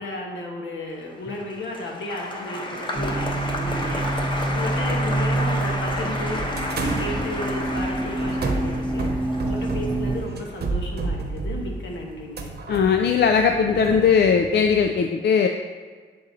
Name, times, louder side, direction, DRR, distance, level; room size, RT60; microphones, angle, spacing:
voice 1, 0.0-12.5, left 1 dB, 80° left, 0 dB, 1.4 m, -34 dB
Applause, 1.1-11.5 11.8-12.4, left 1 dB, 25° left, 1.0 m, -32 dB
sound 1, 2.9-10.2, right 1 dB, 10° right, 0.8 m, -27 dB
sound 2, 6.6-14.9, right 3 dB, 55° right, 0.9 m, -31 dB
voice 2, 12.7-15.5, left 6 dB, 60° left, 5 dB, 0.4 m, -19 dB
7.7 x 4.0 x 4.1 m, 1.5 s
cardioid pair, 85°, 19 cm